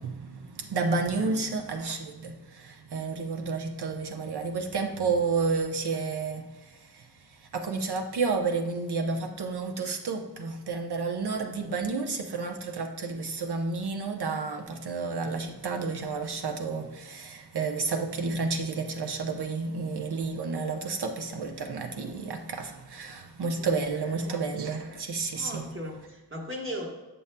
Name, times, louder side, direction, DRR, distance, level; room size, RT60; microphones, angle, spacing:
voice 1, 0.0-7.1 7.4-25.7, right 4 dB, 70° right, 0.8 m, -31 dB
voice 2, 1.1-1.5 23.6-24.4 25.3-26.9, equal, 30° right, 1.2 m, -39 dB
7.1 x 6.9 x 2.2 m
wide cardioid pair, 95°, 40 cm